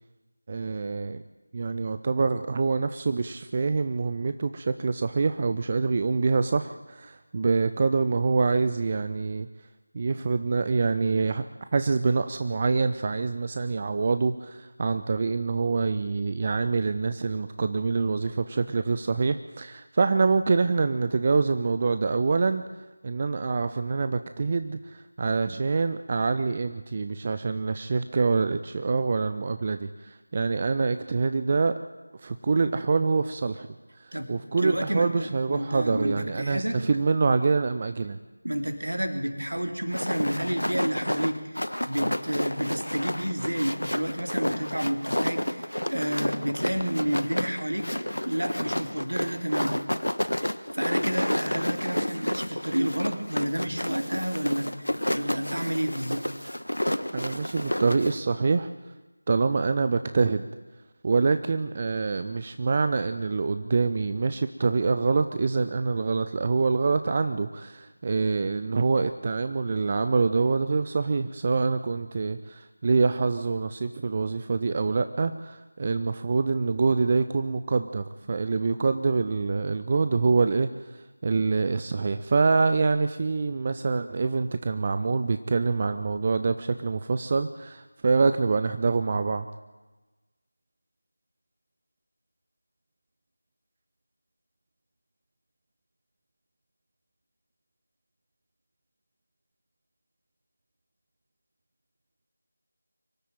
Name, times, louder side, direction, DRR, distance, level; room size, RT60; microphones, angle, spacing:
voice 1, 0.5-1.2 1.5-9.5 9.9-11.4 11.7-22.6 23.0-31.7 32.2-33.7 34.0-38.2 57.1-58.7 59.3-60.4 61.0-89.5, right 4 dB, 25° right, 10 dB, 0.6 m, -25 dB
voice 2, 34.6-36.8 38.4-47.9 48.2-49.7 50.7-54.7 55.1-56.3, right 1 dB, 70° right, 6 dB, 3.1 m, -30 dB
sound 1, 39.9-58.2, left 1 dB, 75° left, 1.3 m, -30 dB
24.0 x 13.0 x 9.1 m, 1.2 s
figure-of-eight pair, 170°, 0 cm